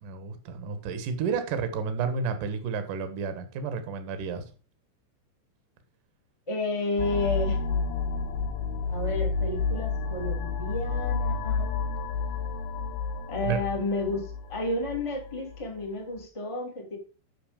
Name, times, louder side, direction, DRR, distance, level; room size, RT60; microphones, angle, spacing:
voice 1, 0.0-4.4 13.4-13.6, right 6 dB, 65° right, 8 dB, 2.1 m, -31 dB
voice 2, 6.5-7.6 8.9-11.7 13.3-17.0, left 2 dB, 20° left, 0 dB, 0.7 m, -31 dB
sound 1, 7.0-15.6, left 5 dB, 85° left, 2.2 m, -30 dB
9.7 x 6.3 x 5.0 m, 0.35 s
omnidirectional pair, 5.6 m